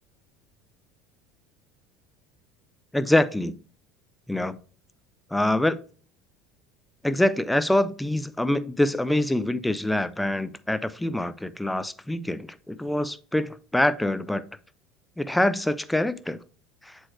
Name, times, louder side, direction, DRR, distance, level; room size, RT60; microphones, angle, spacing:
voice 1, 2.9-3.6 4.3-4.6 5.3-5.8 7.0-14.4 15.2-16.4 16.8-17.0, left 1 dB, 5° left, 0.6 m, -25 dB
7.4 x 4.6 x 3.2 m
hypercardioid pair, 75°, 0 cm